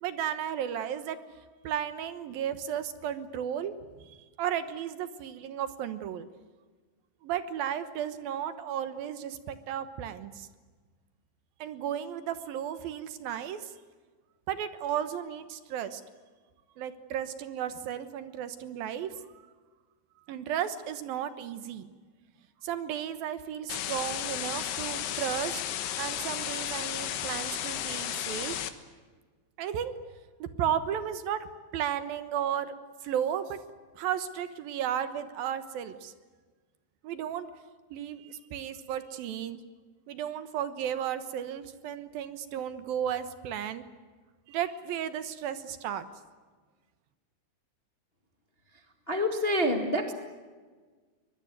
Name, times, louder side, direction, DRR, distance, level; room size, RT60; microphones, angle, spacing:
voice 1, 0.0-1.2 1.6-6.3 7.2-10.5 11.6-13.7 14.5-16.0 16.8-19.2 20.3-21.9 22.6-25.6 26.0-28.6 29.6-29.9 30.4-31.5 31.7-32.7 33.0-33.6 34.0-36.1 37.0-37.5 37.9-39.6 40.1-43.8 44.5-46.1, right 9 dB, 70° right, 12 dB, 2.9 m, -34 dB
sound 1, 23.7-28.7, left 11 dB, 90° left, 3.4 m, -33 dB
voice 2, 49.1-50.1, equal, 25° left, 5 dB, 1.3 m, -27 dB
24.0 x 21.0 x 9.5 m, 1.4 s
omnidirectional pair, 4.5 m